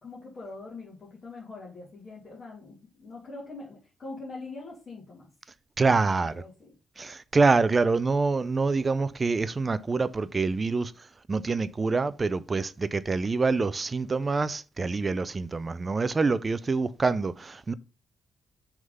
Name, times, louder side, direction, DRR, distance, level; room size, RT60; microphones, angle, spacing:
voice 1, 0.0-5.3 5.8-6.7, left 3 dB, 30° left, 2.2 m, -43 dB
voice 2, 5.8-6.3 7.0-10.9 11.3-17.7, right 4 dB, 25° right, 0.4 m, -26 dB
6.5 x 3.6 x 5.4 m
cardioid pair, 140°, 0 cm